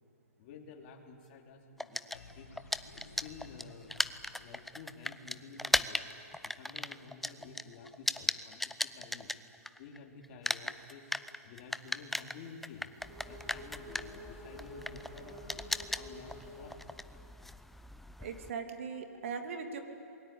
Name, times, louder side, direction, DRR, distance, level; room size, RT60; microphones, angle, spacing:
voice 1, 0.4-2.5 2.9-4.0 4.4-6.1 6.4-9.3 9.8-11.1 11.4-12.9 13.2-16.9 17.1-17.2 18.5-18.6, left 4 dB, 40° left, 1 dB, 3.5 m, -51 dB
sound 1, 1.8-10.0 10.2-18.5, left 1 dB, ahead, 0.5 m, -37 dB
sound 2, 2.1-5.4, left 3 dB, 85° left, 3.4 m, -55 dB
sound 3, 11.8-16.8, equal, 15° right, 8.0 m, -51 dB
voice 2, 18.2-19.8, right 5 dB, 60° right, 5 dB, 3.0 m, -39 dB
28.0 x 21.5 x 8.7 m, 2.7 s
hypercardioid pair, 125°, 8 cm